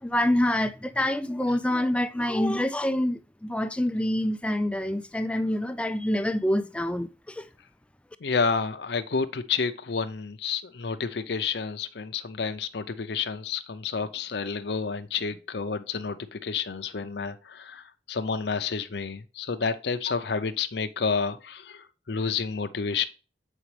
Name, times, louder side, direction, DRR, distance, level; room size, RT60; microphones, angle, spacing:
voice 1, 0.0-7.5, left 1 dB, 5° left, 0.3 m, -26 dB
voice 2, 8.2-23.1, left 5 dB, 70° left, 0.6 m, -30 dB
7.2 x 5.0 x 3.2 m
head